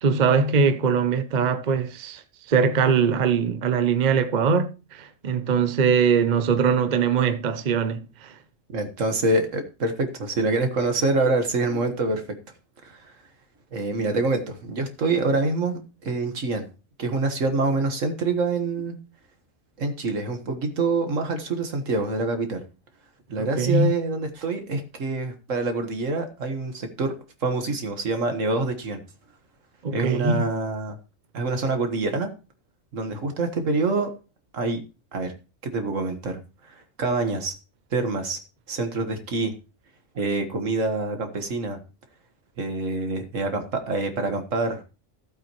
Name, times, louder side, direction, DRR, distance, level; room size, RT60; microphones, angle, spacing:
voice 1, 0.0-2.2 2.5-8.3 23.4-23.9 29.8-30.4, right 5 dB, 40° right, 0.8 m, -22 dB
voice 2, 8.7-12.2 12.8-13.1 13.7-16.7 17.0-19.0 19.8-22.6 23.3-27.1 27.4-29.0 29.9-31.0 31.3-32.3 32.9-34.1 34.5-34.8 35.1-35.3 35.6-37.5 37.9-38.4 38.7-39.5 40.2-41.8 42.6-44.8, right 3 dB, 80° right, 1.9 m, -26 dB
15.0 x 8.0 x 3.1 m
omnidirectional pair, 1.3 m